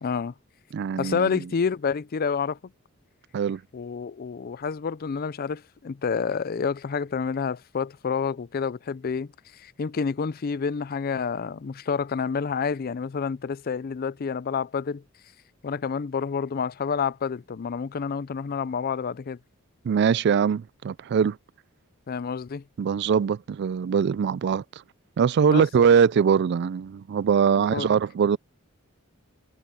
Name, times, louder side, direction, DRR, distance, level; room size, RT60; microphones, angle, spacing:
voice 1, 0.0-0.3 1.0-2.6 3.7-15.0 15.6-19.4 22.1-22.6 25.5-25.7 27.6-27.9, left 6 dB, 45° left, 0.4 m, -29 dB
voice 2, 0.7-1.4 3.3-3.6 19.8-21.4 22.8-24.6 25.2-28.4, right 7 dB, 55° right, 0.3 m, -22 dB
head